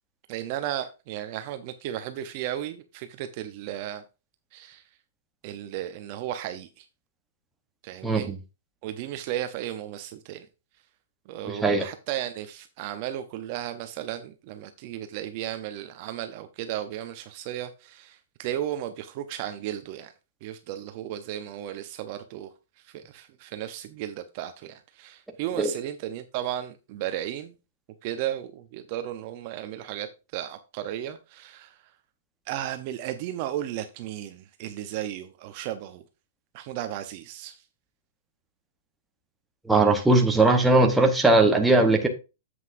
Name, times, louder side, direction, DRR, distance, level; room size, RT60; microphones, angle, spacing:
voice 1, 0.3-4.0 4.5-4.8 5.4-6.8 7.8-8.3 8.8-10.5 11.3-20.1 20.4-22.5 22.9-27.5 28.0-30.1 30.3-31.7 32.5-36.0 36.5-37.6, right 12 dB, 30° right, 0.6 m, -34 dB
voice 2, 8.0-8.4 11.4-11.8 25.6-25.7 39.6-42.1, right 2 dB, 5° right, 0.9 m, -19 dB
9.4 x 7.7 x 2.5 m
hypercardioid pair, 175°, 0 cm